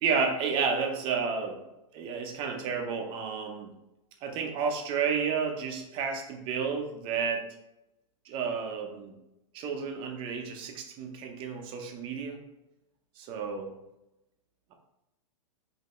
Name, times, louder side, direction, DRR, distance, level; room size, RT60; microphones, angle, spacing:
voice 1, 0.0-1.6 1.9-3.7 4.2-7.4 8.3-9.1 9.5-12.4 13.2-13.7, right 5 dB, 30° right, 4 dB, 0.7 m, -31 dB
5.2 x 2.8 x 3.1 m, 0.92 s
hypercardioid pair, 150°, 17 cm